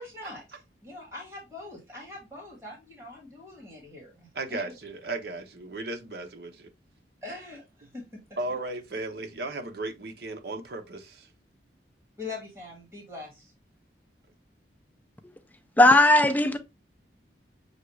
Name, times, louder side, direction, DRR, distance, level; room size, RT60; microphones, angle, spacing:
voice 1, 0.0-4.7 7.2-8.2 12.2-13.5, left 3 dB, 15° right, 1.7 m, -43 dB
voice 2, 4.3-6.7 8.4-11.3, right 2 dB, 60° right, 0.7 m, -35 dB
voice 3, 15.8-16.6, left 1 dB, 10° left, 0.3 m, -17 dB
6.3 x 2.3 x 3.1 m
head